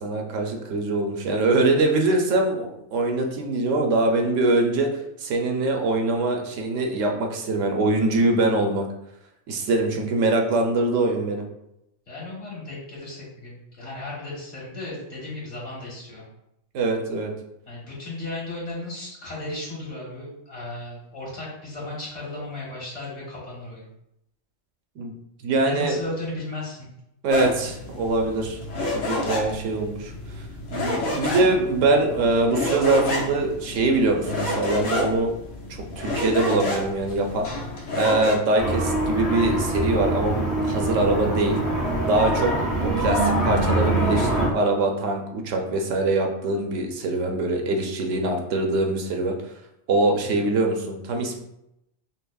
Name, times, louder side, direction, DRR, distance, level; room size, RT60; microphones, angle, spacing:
voice 1, 0.0-4.9 5.2-8.9 9.5-11.4 16.7-17.3 25.0-25.1 25.4-26.0 27.2-28.6 28.9-30.1 30.7-35.3 36.0-37.5 38.0-41.6 42.0-49.4 49.9-51.4, right 2 dB, 80° right, 2 dB, 1.0 m, -23 dB
voice 2, 12.1-16.2 17.7-23.8 25.6-26.9 50.1-50.4, left 2 dB, 65° left, -6 dB, 1.7 m, -35 dB
sound 1, 27.3-38.4, left 1 dB, 85° left, 1.1 m, -30 dB
sound 2, 38.6-44.5, right 1 dB, 40° left, 1.4 m, -24 dB
5.5 x 2.1 x 2.3 m, 0.84 s
omnidirectional pair, 1.3 m